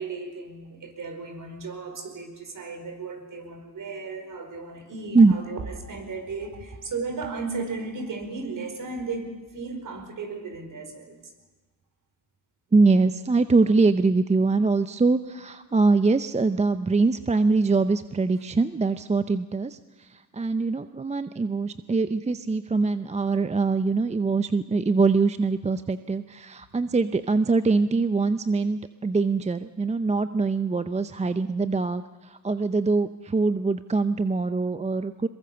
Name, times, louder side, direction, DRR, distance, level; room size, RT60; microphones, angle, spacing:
voice 1, 0.0-11.3 18.4-18.5 23.2-23.3, right 4 dB, 50° right, 6 dB, 5.0 m, -35 dB
voice 2, 12.7-35.3, right 3 dB, 15° right, 11 dB, 0.7 m, -23 dB
22.5 x 22.5 x 6.9 m, 1.2 s
supercardioid pair, 80°, 42 cm